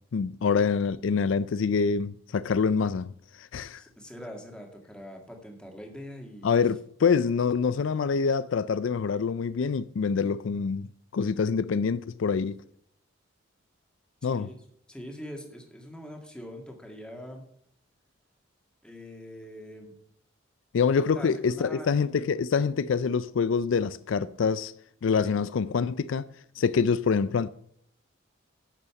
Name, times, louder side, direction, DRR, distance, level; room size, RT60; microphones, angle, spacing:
voice 1, 0.1-3.1 3.4-3.8 6.4-10.9 11.1-12.6 14.2-14.5 20.7-24.7 25.0-26.3 26.6-27.5, left 5 dB, 70° left, 0.4 m, -26 dB
voice 2, 3.8-6.5 14.2-14.6 14.9-17.5 18.8-19.9 21.0-22.3 26.6-26.7, equal, 5° left, 2.0 m, -43 dB
10.5 x 6.9 x 7.0 m
head